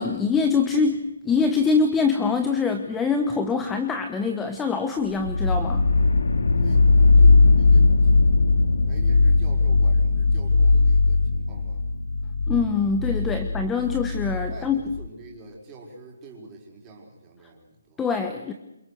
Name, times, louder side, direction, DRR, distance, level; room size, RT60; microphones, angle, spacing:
voice 1, 0.0-5.9 12.5-14.8 18.0-18.5, left 5 dB, 5° left, 6 dB, 1.1 m, -24 dB
sound 1, 5.2-15.1, left 3 dB, 90° left, 2.5 m, -19 dB
voice 2, 7.2-8.1 8.9-11.8 13.2-13.7 14.5-18.0, right 3 dB, 15° right, -1 dB, 4.8 m, -45 dB
28.0 x 23.5 x 6.5 m, 0.94 s
hypercardioid pair, 170°, 0 cm